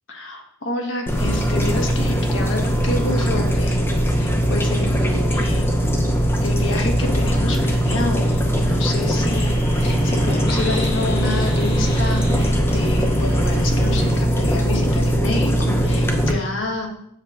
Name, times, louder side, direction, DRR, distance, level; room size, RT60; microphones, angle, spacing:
voice 1, 0.1-3.9 4.2-5.7 6.4-16.9, left 2 dB, 60° left, 1 dB, 1.4 m, -28 dB
sound 1, 1.1-16.3, equal, 10° left, 0.7 m, -20 dB
sound 2, 6.9-14.1, equal, 45° left, 2.0 m, -31 dB
7.3 x 3.9 x 6.4 m, 0.75 s
head